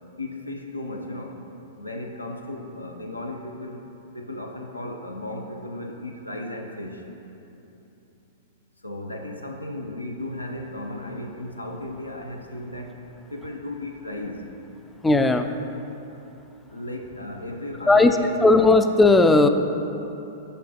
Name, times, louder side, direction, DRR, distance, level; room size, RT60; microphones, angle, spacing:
voice 1, 0.2-1.3 1.8-3.8 4.1-7.0 8.8-13.0 13.3-14.4 16.7-18.3, left 1 dB, 90° left, 2 dB, 0.5 m, -35 dB
voice 2, 15.0-15.5 17.9-18.2 18.4-19.5, left 2 dB, 10° left, 8 dB, 0.3 m, -16 dB
5.5 x 5.2 x 4.2 m, 2.9 s
figure-of-eight pair, 100°, 0 cm